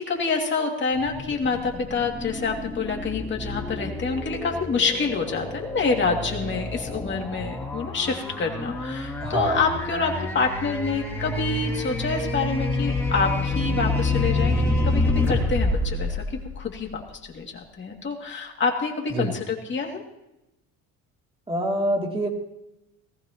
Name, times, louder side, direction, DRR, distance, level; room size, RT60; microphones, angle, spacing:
voice 1, 0.0-17.0 17.3-20.0, left 4 dB, 35° left, 1 dB, 2.6 m, -27 dB
sound 1, 0.9-17.2, left 2 dB, 5° left, 3.0 m, -28 dB
voice 2, 9.2-9.6 19.1-19.3 21.5-22.3, right 1 dB, 15° right, 1 dB, 2.9 m, -25 dB
19.0 x 15.5 x 3.0 m, 0.90 s
cardioid pair, 125°, 34 cm